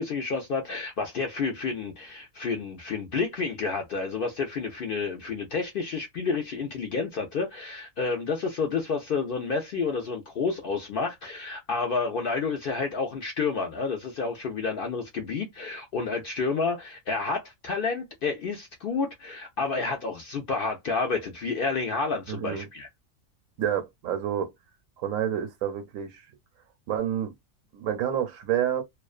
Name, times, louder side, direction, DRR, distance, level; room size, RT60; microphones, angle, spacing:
voice 1, 0.0-22.9, left 4 dB, 65° left, 0.5 m, -30 dB
voice 2, 22.3-22.7 23.6-24.5 25.0-26.2 26.9-27.3 27.7-28.8, right 10 dB, 80° right, 1.0 m, -28 dB
2.4 x 2.2 x 2.3 m
omnidirectional pair, 1.4 m